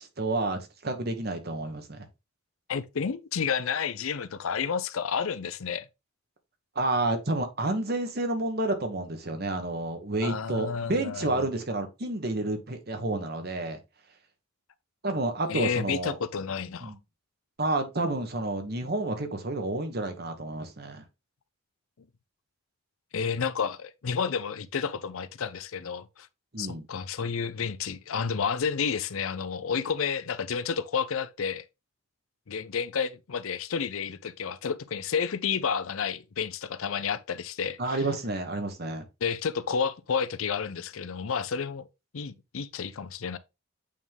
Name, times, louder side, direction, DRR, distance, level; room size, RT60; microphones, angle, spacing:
voice 1, 0.0-2.1 6.7-13.8 15.0-16.2 16.8-17.0 17.6-21.0 26.5-26.9 37.8-39.0, right 2 dB, 45° right, 1.1 m, -30 dB
voice 2, 2.7-5.9 10.2-11.4 15.5-16.9 23.1-26.3 26.6-31.6 32.5-38.0 39.2-41.9 42.1-43.4, left 6 dB, 70° left, 0.5 m, -30 dB
8.5 x 3.6 x 3.5 m
head